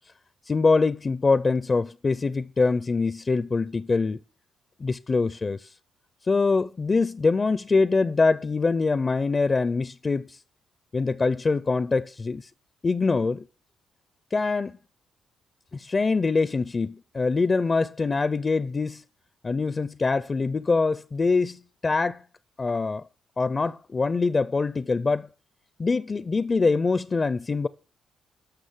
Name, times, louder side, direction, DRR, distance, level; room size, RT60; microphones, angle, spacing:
voice 1, 0.5-4.2 4.8-5.7 6.3-10.4 10.9-12.5 12.8-13.5 14.3-14.8 15.7-19.0 19.4-22.2 22.6-23.1 23.4-25.3 25.8-27.7, left 4 dB, 30° left, 0.5 m, -24 dB
11.5 x 6.3 x 7.4 m
cardioid pair, 90°, 0 cm